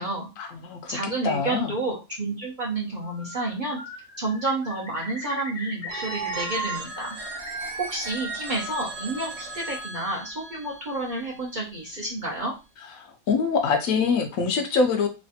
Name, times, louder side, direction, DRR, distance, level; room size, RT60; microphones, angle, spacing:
voice 1, 0.4-1.0 1.2-1.7 13.0-15.1, left 5 dB, 70° left, 5 dB, 0.9 m, -24 dB
voice 2, 0.9-3.8 4.2-7.2 7.8-12.5, right 2 dB, 45° right, -3 dB, 0.7 m, -30 dB
Bird, 2.9-3.5 3.8-7.5 7.8-8.6, left 3 dB, 35° left, 0.7 m, -40 dB
Telephone, 5.9-11.7, right 3 dB, 85° right, 1.2 m, -35 dB
3.1 x 2.4 x 2.7 m, 0.28 s
omnidirectional pair, 1.5 m